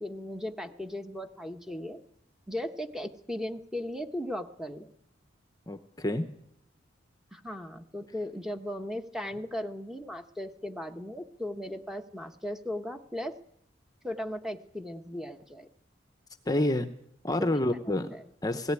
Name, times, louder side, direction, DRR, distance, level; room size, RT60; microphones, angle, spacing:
voice 1, 0.0-2.0 2.5-4.9 7.3-13.4 14.0-15.7 17.4-17.6 18.1-18.2, left 1 dB, 5° right, 6 dB, 1.1 m, -37 dB
voice 2, 5.7-6.4 16.5-16.9 17.2-18.2 18.4-18.7, left 1 dB, 20° left, 9 dB, 0.9 m, -28 dB
17.5 x 17.5 x 9.8 m, 0.74 s
head